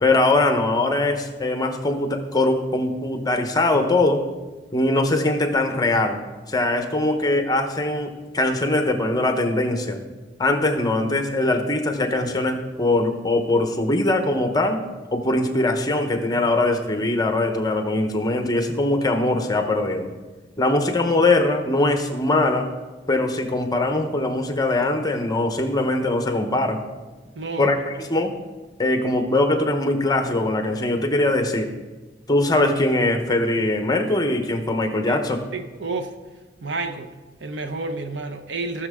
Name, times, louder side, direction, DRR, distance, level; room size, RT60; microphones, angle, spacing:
voice 1, 0.0-4.2 4.7-6.2 6.5-10.0 10.4-14.8 15.1-20.1 20.6-22.7 23.1-26.8 27.6-27.8 28.1-28.3 28.8-31.7 32.3-35.4, left 2 dB, 20° left, 0.9 m, -21 dB
voice 2, 27.4-27.7 35.1-35.2 35.5-36.1 36.6-37.1 37.4-38.9, right 3 dB, 75° right, 0.8 m, -30 dB
17.5 x 6.6 x 3.6 m
head